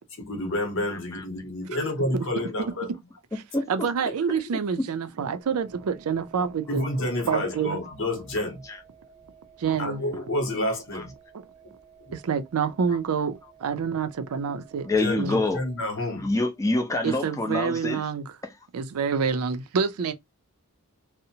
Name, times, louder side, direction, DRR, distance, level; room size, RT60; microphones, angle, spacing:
voice 1, 0.2-2.9 6.7-8.6 9.8-11.1 15.0-15.2 15.5-16.3, left 1 dB, 60° left, 0.8 m, -29 dB
voice 2, 0.9-1.3 3.3-3.9 4.8-4.9 8.6-8.8 10.7-11.1 12.9-13.0 14.8-15.6 16.0-18.1 18.4-18.6, left 2 dB, 15° left, 0.4 m, -27 dB
voice 3, 3.7-6.9 7.3-7.8 9.6-10.0 12.1-14.9 15.2-15.4 17.0-18.3 18.7-20.1, right 6 dB, 75° right, 0.4 m, -27 dB
sound 1, 5.4-15.8, right 7 dB, 30° right, 0.7 m, -54 dB
2.6 x 2.0 x 2.7 m
head